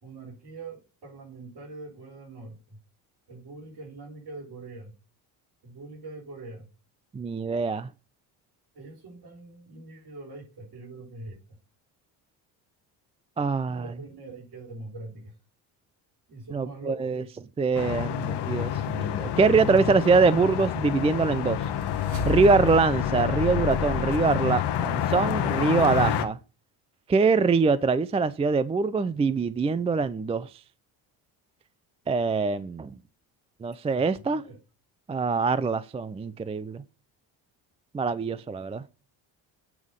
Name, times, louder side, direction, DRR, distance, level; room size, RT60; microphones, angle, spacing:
voice 1, 0.0-2.8 3.3-4.9 5.6-6.6 8.7-11.6 13.6-15.3 16.3-17.3 34.0-34.6, right 2 dB, 55° right, 4.7 m, -43 dB
voice 2, 7.1-7.9 13.4-13.9 16.5-17.2 17.6-21.6 22.3-26.4 27.1-30.5 32.1-32.9 33.6-34.4 35.1-36.8 37.9-38.8, right 4 dB, 15° right, 0.4 m, -24 dB
sound 1, 17.7-26.2, left 10 dB, 60° left, 1.2 m, -28 dB
sound 2, 21.4-24.9, left 1 dB, 85° right, 4.5 m, -36 dB
8.4 x 3.6 x 6.4 m
supercardioid pair, 85°, 45 cm